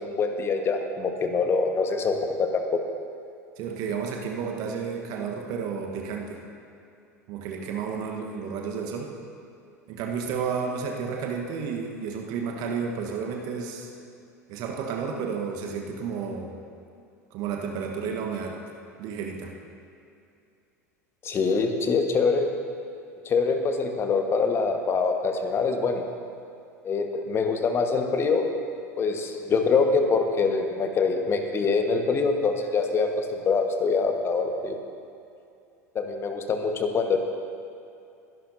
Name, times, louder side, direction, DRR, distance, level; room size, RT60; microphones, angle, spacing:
voice 1, 0.0-2.8 21.2-22.5 23.2-26.1 26.8-28.5 29.0-34.8 35.9-37.2, left 4 dB, 30° left, 4 dB, 1.4 m, -24 dB
voice 2, 3.6-6.4 7.3-9.1 9.9-13.9 14.5-16.6 17.3-18.6 19.0-19.5, right 6 dB, 45° right, 2 dB, 1.2 m, -31 dB
21.5 x 11.5 x 2.7 m, 2.6 s
figure-of-eight pair, 80°, 9 cm